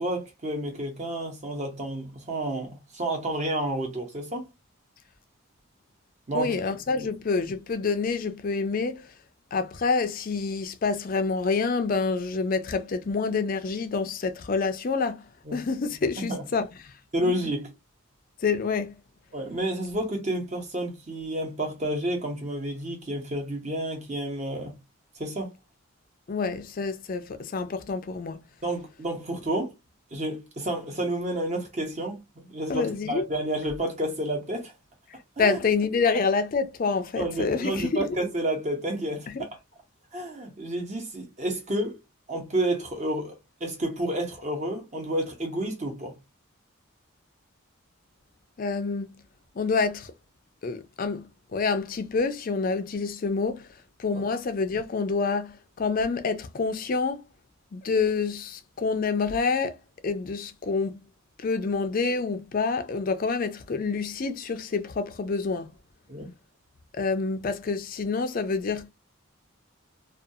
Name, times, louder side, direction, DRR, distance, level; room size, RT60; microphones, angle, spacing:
voice 1, 0.0-4.5 6.3-6.5 7.0-7.1 15.4-15.6 16.2-16.4 17.1-17.7 19.3-24.8 25.2-25.5 28.6-29.7 30.1-34.7 35.4-35.6 36.1-36.2 37.2-39.3 40.1-42.0 42.3-43.3 43.6-46.2 54.1-54.2 66.1-66.3, right 1 dB, 35° right, 0.9 m, -30 dB
voice 2, 6.3-9.1 9.5-16.9 17.2-17.3 18.4-19.0 26.3-28.5 32.7-33.2 35.4-38.1 39.3-39.4 48.6-49.1 49.6-50.1 50.6-53.7 54.0-57.2 57.7-59.8 60.0-61.0 61.4-65.7 66.9-68.9, left 4 dB, 40° left, 0.4 m, -27 dB
2.4 x 2.3 x 2.7 m
head